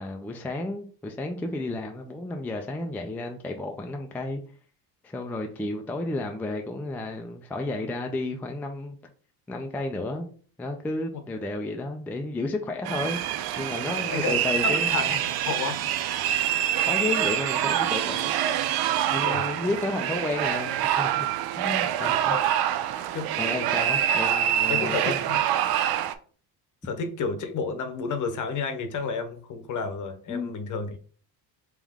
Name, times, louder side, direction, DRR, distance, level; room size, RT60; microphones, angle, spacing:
voice 1, 0.0-4.4 5.0-9.0 9.5-10.3 10.6-13.2 13.6-15.2 16.9-18.3 19.1-22.4 23.4-25.2 30.3-30.5, left 2 dB, 5° left, 0.3 m, -32 dB
sound 1, 12.8-26.1, right 11 dB, 65° right, 0.5 m, -26 dB
voice 2, 14.1-15.8 19.2-19.4 22.1-22.4 23.1-23.3 24.7-25.4 25.7-25.9 26.8-30.9, left 4 dB, 50° left, 0.8 m, -31 dB
3.6 x 3.0 x 3.5 m
cardioid pair, 120°, 40 cm